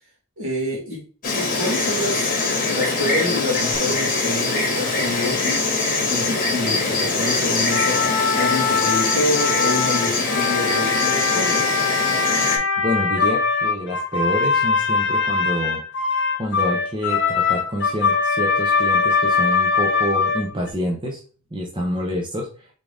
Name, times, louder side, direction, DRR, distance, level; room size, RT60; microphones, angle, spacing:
voice 1, 0.4-1.0 1.3-5.7 6.1-8.0 8.3-11.7, left 1 dB, 65° right, 2.3 m, -27 dB
Insect, 1.2-12.6, left 3 dB, 40° left, 1.1 m, -23 dB
sound 1, 3.7-9.2, left 2 dB, 15° left, 1.3 m, -40 dB
sound 2, 7.7-20.7, left 5 dB, 55° left, 0.9 m, -22 dB
voice 2, 12.8-15.8 16.4-21.2 21.5-22.7, equal, 20° right, 0.7 m, -27 dB
3.8 x 3.6 x 3.4 m
head